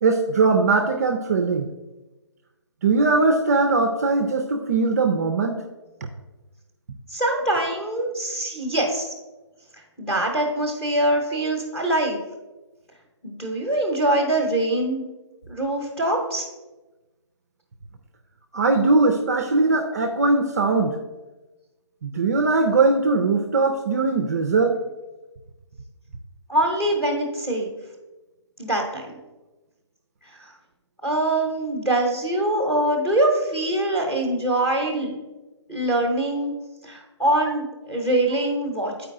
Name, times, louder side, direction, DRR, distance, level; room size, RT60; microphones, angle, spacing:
voice 1, 0.0-1.7 2.8-5.6 18.5-21.0 22.0-24.8, right 3 dB, 35° right, 5 dB, 0.4 m, -20 dB
voice 2, 7.1-9.1 10.0-12.2 13.2-15.0 15.5-16.4 26.5-27.7 28.6-29.0 30.4-30.5 31.0-35.2 35.7-36.5 36.8-39.1, right 1 dB, 5° left, -1 dB, 0.9 m, -23 dB
7.9 x 4.7 x 3.7 m, 1.1 s
hypercardioid pair, 165°, 15 cm